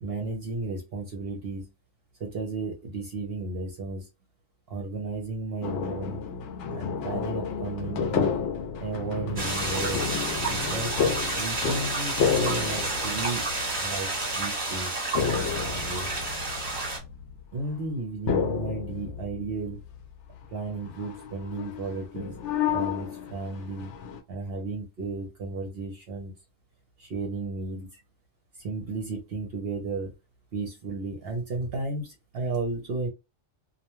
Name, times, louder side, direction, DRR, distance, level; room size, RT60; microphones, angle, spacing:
voice 1, 0.0-1.7 2.2-4.1 4.7-6.2 6.7-8.4 8.8-10.0 10.5-11.0 11.4-13.5 13.8-15.0 15.5-16.1 17.5-19.8 20.5-22.4 22.7-23.9 24.3-26.3 27.0-28.0 28.6-30.1 30.5-33.1, right 3 dB, 60° right, 2 dB, 0.8 m, -34 dB
sound 1, 5.6-17.7 18.3-20.1 20.4-20.5 20.8-24.2, left 6 dB, 70° left, 0.8 m, -31 dB
sound 2, 9.4-17.0, right 2 dB, 30° right, 1.3 m, -30 dB
2.4 x 2.2 x 2.9 m, 0.25 s
omnidirectional pair, 1.3 m